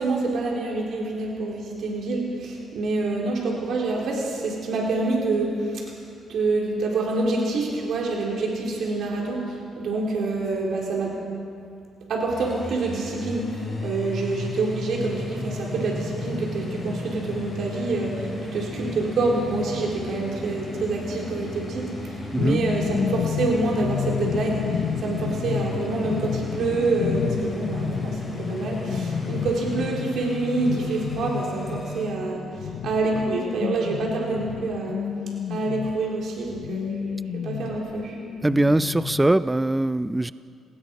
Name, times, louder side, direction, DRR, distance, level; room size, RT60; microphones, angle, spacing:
voice 1, 0.0-5.8 6.3-11.2 12.1-13.5 13.8-21.9 22.4-32.4 32.8-35.0 35.5-38.2, right 3 dB, 70° right, -2 dB, 4.1 m, -27 dB
sound 1, 12.3-32.0, left 2 dB, 25° left, 7.1 m, -34 dB
sound 2, 22.4-36.1 36.5-39.3, left 9 dB, 70° left, 0.7 m, -31 dB
voice 2, 38.4-40.3, right 2 dB, 10° right, 14 dB, 0.5 m, -21 dB
28.5 x 19.0 x 5.4 m, 2.4 s
cardioid pair, 90°, 0 cm